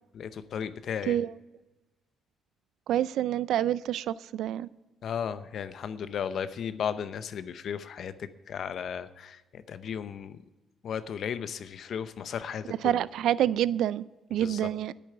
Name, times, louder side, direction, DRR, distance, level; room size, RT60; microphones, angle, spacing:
voice 1, 0.1-1.2 5.0-10.4 10.8-13.0 14.4-14.6, left 7 dB, 65° left, 0.8 m, -35 dB
voice 2, 2.9-4.7 12.8-14.0 14.3-14.9, right 11 dB, 80° right, 0.3 m, -27 dB
10.0 x 8.6 x 9.2 m
cardioid pair, 90°, 0 cm